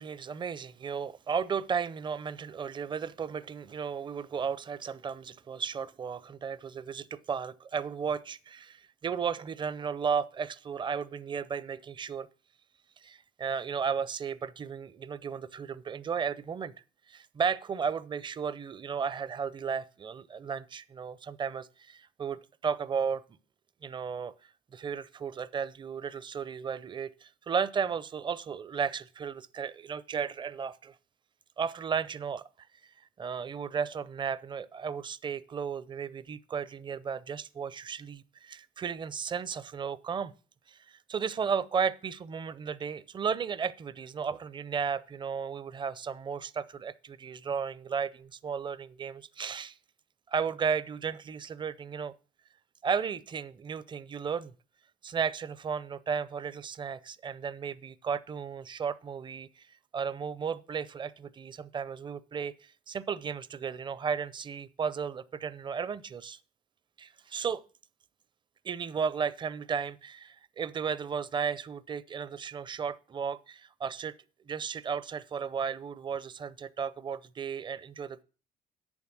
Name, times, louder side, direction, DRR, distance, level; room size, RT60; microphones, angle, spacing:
voice 1, 0.0-12.3 13.0-16.7 17.1-23.2 23.8-24.3 24.7-30.9 31.6-32.4 33.2-40.3 40.7-49.8 50.3-52.1 52.8-54.5 55.0-59.7 59.9-66.4 67.0-67.6 68.6-74.1 74.5-78.2, right 6 dB, 30° right, 0.6 m, -34 dB
8.6 x 7.2 x 6.1 m
cardioid pair, 110°, 17 cm